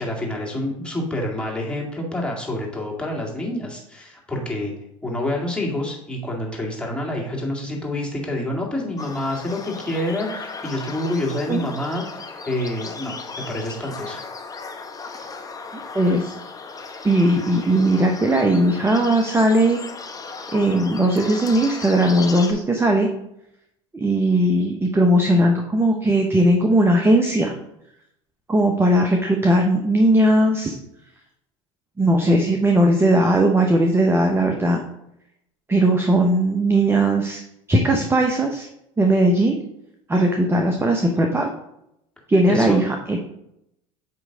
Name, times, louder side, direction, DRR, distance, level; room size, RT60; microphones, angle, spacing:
voice 1, 0.0-4.7 5.0-13.2 13.5-14.2 42.5-42.8, left 1 dB, 5° left, -3 dB, 2.1 m, -27 dB
sound 1, 9.0-22.5, left 4 dB, 20° left, 0.9 m, -36 dB
voice 2, 15.9-16.3 17.0-19.8 20.5-23.1 23.9-27.5 28.5-30.8 32.0-34.8 35.7-37.4 37.7-38.7 39.0-39.6 40.1-41.5 42.3-43.2, right 1 dB, 15° right, 3 dB, 0.8 m, -18 dB
8.4 x 3.2 x 3.8 m, 0.79 s
hypercardioid pair, 80°, 16 cm